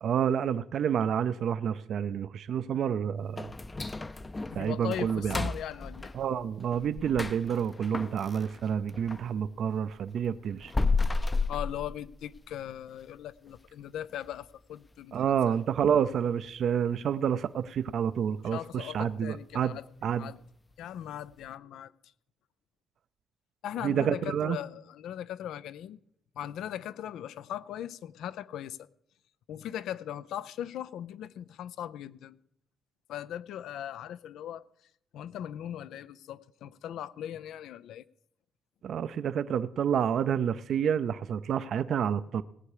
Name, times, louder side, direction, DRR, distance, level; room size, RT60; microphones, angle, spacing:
voice 1, 0.0-3.5 4.5-5.5 6.1-10.7 15.1-19.8 20.0-20.3 23.8-24.6 38.8-42.4, right 8 dB, 65° right, 0.5 m, -29 dB
sound 1, 3.4-9.3 9.7-12.5 12.9-13.0 13.5-13.6 14.1-14.4 14.7-14.8 15.4-15.5, left 3 dB, 20° left, 0.5 m, -33 dB
voice 2, 4.5-6.1 11.5-15.5 18.4-19.8 20.2-20.4 20.8-21.9 23.6-26.0 26.4-28.9 29.5-32.4 33.1-34.6 35.1-38.0, left 11 dB, 80° left, 0.5 m, -39 dB
18.5 x 8.3 x 4.9 m
cardioid pair, 90°, 0 cm